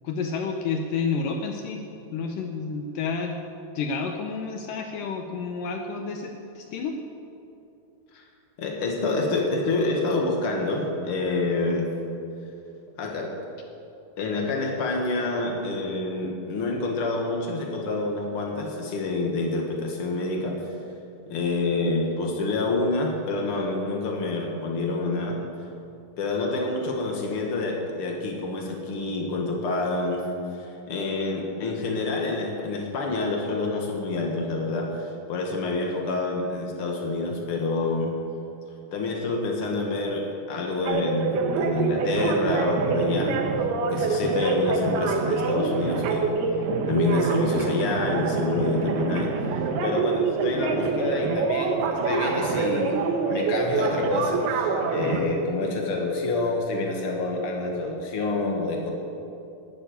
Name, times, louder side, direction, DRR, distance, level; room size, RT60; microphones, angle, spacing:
voice 1, 0.0-1.8 2.1-3.4 3.8-7.0 55.1-55.4, left 5 dB, 85° left, 4 dB, 1.9 m, -30 dB
voice 2, 8.6-11.9 13.0-13.3 14.2-20.6 21.3-25.4 26.2-30.3 30.6-38.1 38.9-43.4 43.8-46.3 46.9-49.3 49.8-58.9, left 3 dB, 65° left, 0 dB, 1.3 m, -27 dB
sound 1, 40.9-55.2, right 4 dB, 75° right, 3.0 m, -26 dB
11.5 x 9.7 x 9.3 m, 2.7 s
omnidirectional pair, 4.8 m